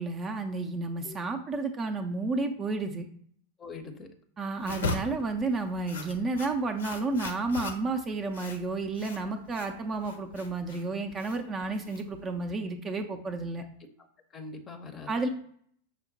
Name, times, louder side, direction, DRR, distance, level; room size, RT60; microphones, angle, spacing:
voice 1, 0.0-3.1 4.4-13.6 15.1-15.3, right 3 dB, 25° right, 5 dB, 0.4 m, -31 dB
voice 2, 3.6-4.1 14.3-15.3, left 4 dB, 25° left, 6 dB, 0.6 m, -43 dB
sound 1, 4.6-12.5, left 3 dB, 65° left, 0.6 m, -39 dB
5.7 x 2.1 x 3.9 m, 0.62 s
figure-of-eight pair, 90°, 0 cm